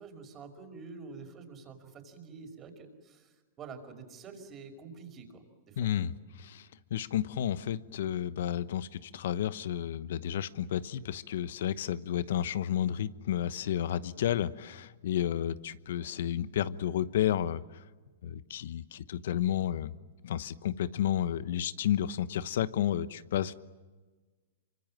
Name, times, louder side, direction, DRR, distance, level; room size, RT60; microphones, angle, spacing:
voice 1, 0.0-5.9, right 4 dB, 30° right, 6 dB, 5.5 m, -48 dB
voice 2, 5.8-17.6 18.2-19.9 20.2-23.5, left 10 dB, 70° left, 15 dB, 1.1 m, -31 dB
26.5 x 25.0 x 7.6 m, 1.3 s
hypercardioid pair, 120°, 0 cm